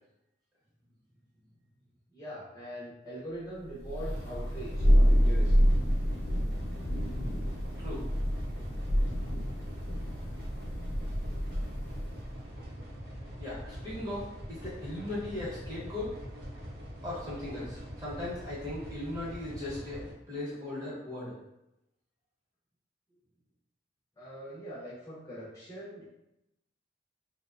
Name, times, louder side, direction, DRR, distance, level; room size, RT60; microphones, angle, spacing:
voice 1, 2.1-5.7 10.0-10.1 24.2-26.0, right 1 dB, 20° left, -9 dB, 0.5 m, -42 dB
Thunder, 3.8-12.2, equal, 70° left, 0.5 m, -28 dB
sound 1, 4.0-20.1, equal, 60° right, 0.5 m, -43 dB
voice 2, 13.4-16.1 17.0-21.3, left 1 dB, 20° right, -9 dB, 0.8 m, -38 dB
2.7 x 2.1 x 2.4 m, 0.89 s
head